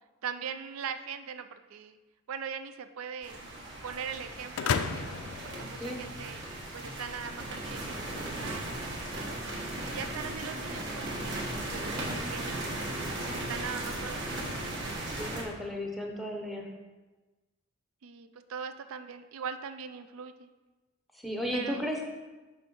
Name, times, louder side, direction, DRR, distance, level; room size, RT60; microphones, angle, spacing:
voice 1, 0.2-2.0 2.3-3.4 3.8-6.5 6.7-9.5 9.9-12.7 13.3-14.8 18.0-20.5 21.5-21.8, right 7 dB, 75° right, 10 dB, 0.4 m, -41 dB
sound 1, 3.2-15.4, right 1 dB, 55° right, 1.2 m, -37 dB
sound 2, 4.6-6.5, left 6 dB, 75° left, 0.4 m, -33 dB
voice 2, 15.2-16.7 21.1-22.0, equal, ahead, 1 dB, 0.6 m, -34 dB
5.9 x 3.5 x 5.4 m, 1.2 s
head